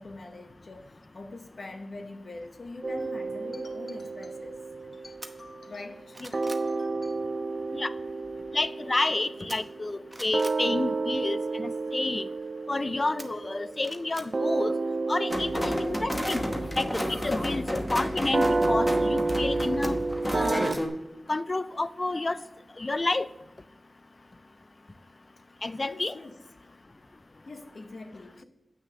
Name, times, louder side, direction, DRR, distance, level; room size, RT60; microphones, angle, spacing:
voice 1, 0.0-4.6 4.9-7.3 16.6-16.7 20.9-21.0 25.8-26.4 27.4-28.4, left 2 dB, 50° left, 1.0 m, -44 dB
sound 1, 2.8-6.1 6.3-20.8, right 3 dB, 45° right, 0.3 m, -31 dB
sound 2, 5.2-5.3 5.8-6.7 9.5-9.8 10.1-10.6 13.2-13.3 13.8-14.3 16.1-17.1 19.8-20.8 21.2-21.3, right 1 dB, 10° right, 0.9 m, -44 dB
voice 2, 8.5-12.3 12.7-14.7 15.1-16.4 16.8-19.9 20.3-20.8 21.3-22.4 22.8-23.3 25.6-26.1, left 2 dB, 30° left, 0.4 m, -30 dB
sound 3, 15.3-20.9, equal, 15° left, 1.1 m, -31 dB
8.1 x 6.3 x 6.3 m
wide cardioid pair, 115°, 0 cm